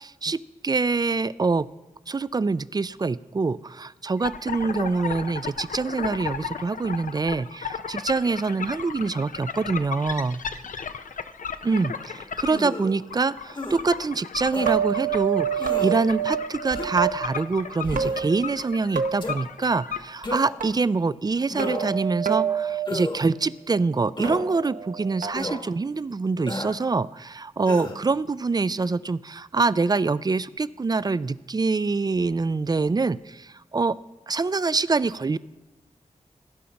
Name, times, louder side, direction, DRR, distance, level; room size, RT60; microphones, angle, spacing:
voice 1, 0.0-1.7 2.1-10.4 11.6-34.0 34.3-35.4, right 4 dB, 30° right, 18 dB, 0.3 m, -25 dB
sound 1, 4.2-20.0, left 6 dB, 80° left, 0.6 m, -35 dB
sound 2, 12.5-13.0 13.5-13.8 14.5-14.8 15.6-16.0 16.7-17.1 17.8-18.2 19.2-19.4 20.2-20.6 21.5-22.0 22.9-23.2 24.2-24.4 25.4-25.6 26.5-26.8 27.7-28.0, left 1 dB, 35° left, 1.2 m, -32 dB
sound 3, 14.6-17.1 17.9-18.7 19.0-19.4 20.6-20.7 21.6-22.9 24.2-25.3, right 8 dB, 80° right, 0.9 m, -27 dB
16.5 x 5.7 x 5.2 m, 1.1 s
wide cardioid pair, 65°, 13 cm